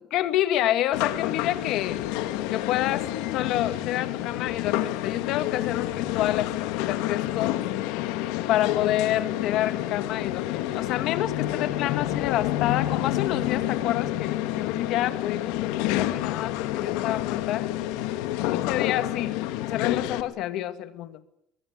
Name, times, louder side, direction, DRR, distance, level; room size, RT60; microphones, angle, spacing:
voice 1, 0.0-2.0 2.5-8.0 8.5-17.7 18.4-19.4 19.7-21.2, left 13 dB, 60° left, 11 dB, 2.1 m, -28 dB
sound 1, 0.9-20.2, left 14 dB, 85° left, 2.0 m, -28 dB
24.0 x 22.5 x 9.6 m, 0.80 s
cardioid pair, 140°, 0 cm